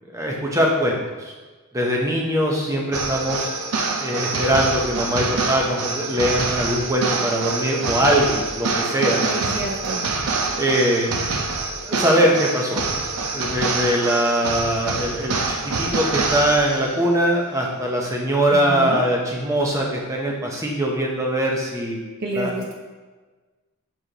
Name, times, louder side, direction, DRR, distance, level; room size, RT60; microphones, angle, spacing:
voice 1, 0.1-1.3 1.7-3.5 4.0-9.2 10.6-11.2 11.8-12.8 13.3-22.0 22.3-22.6, equal, 15° right, -1 dB, 0.8 m, -22 dB
sound 1, 2.9-17.0, right 3 dB, 85° right, 0.6 m, -25 dB
voice 2, 9.2-10.0 18.5-19.0 22.2-22.7, right 2 dB, 45° right, 0 dB, 0.5 m, -29 dB
6.4 x 4.9 x 3.0 m, 1.3 s
head